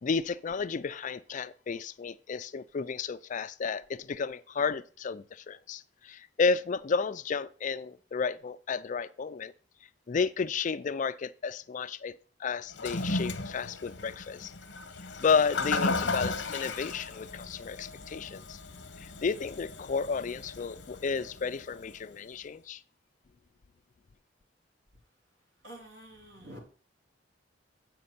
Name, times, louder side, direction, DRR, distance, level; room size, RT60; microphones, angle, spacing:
voice 1, 0.0-9.5 10.1-14.5 15.2-18.6 19.0-22.8, left 5 dB, 45° left, 0.4 m, -32 dB
Toilet flush, 12.7-22.0, left 3 dB, 70° left, 1.0 m, -35 dB
voice 2, 25.6-26.6, right 1 dB, 80° right, 3.0 m, -47 dB
7.9 x 5.2 x 5.6 m
head